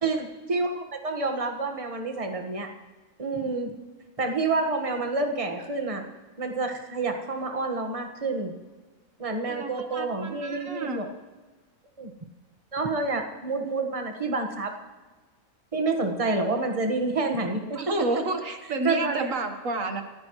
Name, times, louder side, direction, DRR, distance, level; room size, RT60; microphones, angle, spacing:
voice 1, 0.0-2.7 3.2-3.7 4.2-6.0 6.4-8.5 9.2-11.1 12.0-12.1 12.7-14.7 15.7-17.8 18.8-19.3, right 3 dB, 25° right, 4 dB, 1.6 m, -28 dB
voice 2, 9.5-11.0 17.8-20.0, right 2 dB, 75° right, 6 dB, 1.8 m, -30 dB
29.0 x 15.5 x 3.2 m, 1.3 s
omnidirectional pair, 1.4 m